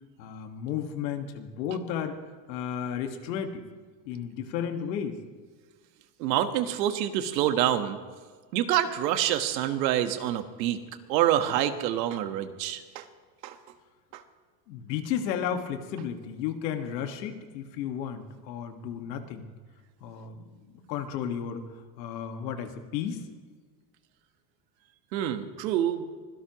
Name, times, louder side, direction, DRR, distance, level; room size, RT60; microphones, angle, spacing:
voice 1, 0.2-2.2 2.5-3.7 4.1-5.2 14.7-19.5 20.0-21.6 22.0-23.2, left 8 dB, 85° left, 6 dB, 1.9 m, -33 dB
voice 2, 6.2-8.0 8.5-10.8 11.1-13.0 13.4-13.6 14.1-14.2 25.1-26.1, right 11 dB, 85° right, 8 dB, 1.5 m, -27 dB
24.5 x 17.0 x 3.1 m, 1.5 s
supercardioid pair, 115°, 50 cm